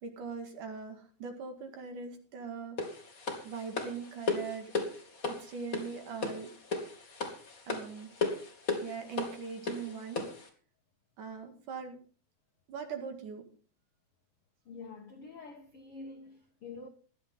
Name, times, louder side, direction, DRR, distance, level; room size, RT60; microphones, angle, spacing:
voice 1, 0.0-2.8 3.4-4.7 5.3-6.5 7.7-8.1 8.8-10.2 11.2-12.0 12.7-13.4, right 5 dB, 55° right, 3.1 m, -41 dB
sound 1, 2.8-10.5, left 3 dB, 30° left, 1.6 m, -36 dB
voice 2, 14.6-16.9, left 3 dB, 75° left, 1.3 m, -47 dB
17.5 x 11.5 x 3.8 m
omnidirectional pair, 4.9 m